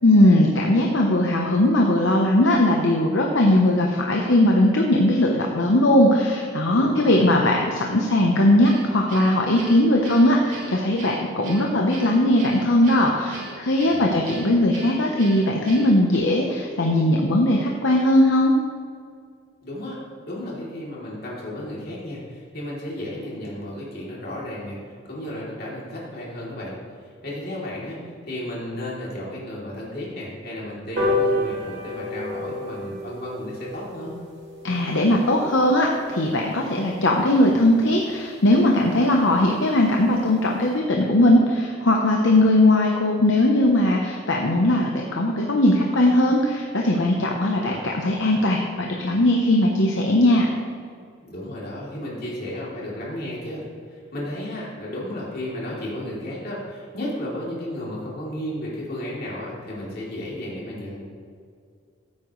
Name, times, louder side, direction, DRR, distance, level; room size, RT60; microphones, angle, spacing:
voice 1, 0.0-18.5 34.6-50.5, left 1 dB, 65° left, 0 dB, 0.8 m, -19 dB
voice 2, 6.7-7.2 13.8-14.3 19.6-24.8 25.1-26.7 27.2-28.0 28.2-34.2 47.5-47.8 51.3-53.6 53.9-61.0, left 1 dB, 45° left, -6 dB, 3.0 m, -33 dB
Guitar, 8.6-16.2, right 2 dB, 85° right, 2.9 m, -40 dB
sound 1, 31.0-37.7 38.1-38.2 38.5-38.7 38.9-39.0 39.3-39.4 39.7-40.0 40.4-40.5, left 1 dB, 55° right, 2.3 m, -30 dB
14.5 x 8.5 x 3.1 m, 2.2 s
head